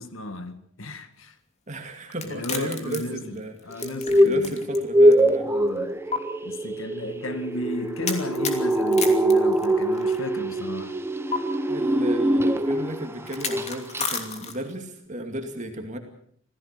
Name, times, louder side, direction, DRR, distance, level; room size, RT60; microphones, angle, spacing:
voice 1, 0.0-1.4 2.2-4.6 5.5-6.0 6.4-11.0, left 1 dB, 80° left, 2.0 m, -34 dB
voice 2, 1.7-3.9 4.2-5.5 11.7-16.0, right 1 dB, 35° right, 2.5 m, -34 dB
sound 1, 2.1-4.8 5.1-5.2 6.1-6.2 8.1-10.2 11.3-11.4 13.3-14.8, left 5 dB, 35° left, 2.9 m, -32 dB
sound 2, 3.8-13.1 13.4-13.7 13.9-14.0, right 1 dB, 10° right, 1.1 m, -22 dB
27.0 x 17.0 x 6.8 m
head